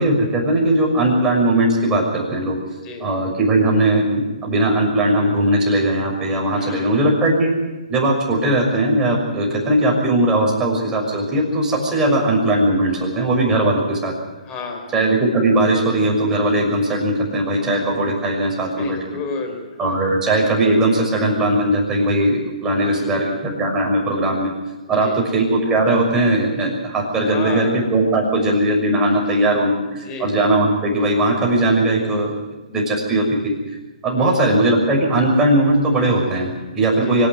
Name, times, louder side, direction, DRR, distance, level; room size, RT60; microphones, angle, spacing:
voice 1, 0.0-2.6 3.0-7.5 7.9-14.1 14.9-19.0 19.8-24.5 24.9-32.3 32.7-33.5 34.0-37.3, right 1 dB, 15° right, -1 dB, 6.3 m, -19 dB
voice 2, 6.5-7.0 12.0-12.2 14.4-14.9 18.5-19.9 22.8-23.2 24.8-25.3 27.3-27.8 29.9-30.4 34.2-34.5 36.9-37.2, left 3 dB, 25° left, 3 dB, 4.3 m, -32 dB
24.5 x 12.0 x 9.6 m, 1.1 s
hypercardioid pair, 145°, 4 cm